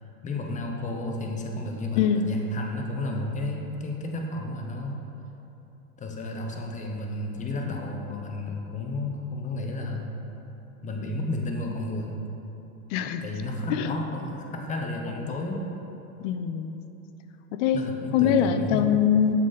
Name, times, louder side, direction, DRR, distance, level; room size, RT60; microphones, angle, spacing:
voice 1, 0.2-5.0 6.0-10.2 10.8-12.2 13.2-15.7 17.7-18.9, left 2 dB, 15° left, 1 dB, 0.7 m, -32 dB
voice 2, 2.0-2.3 12.9-13.2 13.7-13.9 15.1-15.5 16.2-16.8 17.6-17.8 18.1-19.3, left 8 dB, 55° left, 9 dB, 0.5 m, -23 dB
7.1 x 4.1 x 4.0 m, 3.0 s
hypercardioid pair, 105°, 44 cm